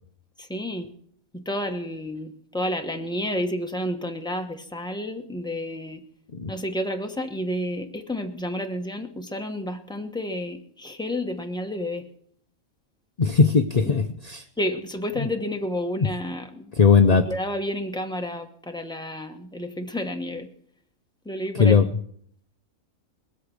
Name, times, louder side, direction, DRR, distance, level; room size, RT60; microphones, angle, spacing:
voice 1, 0.4-0.9 1.3-6.0 6.5-12.0 13.8-13.9 14.6-16.7 17.3-20.5 21.2-21.8, left 1 dB, 5° left, 4 dB, 1.1 m, -30 dB
voice 2, 13.2-14.5 15.2-15.3 16.7-17.3 21.5-21.9, left 5 dB, 45° left, 8 dB, 0.5 m, -18 dB
20.5 x 8.3 x 6.3 m, 0.64 s
omnidirectional pair, 1.4 m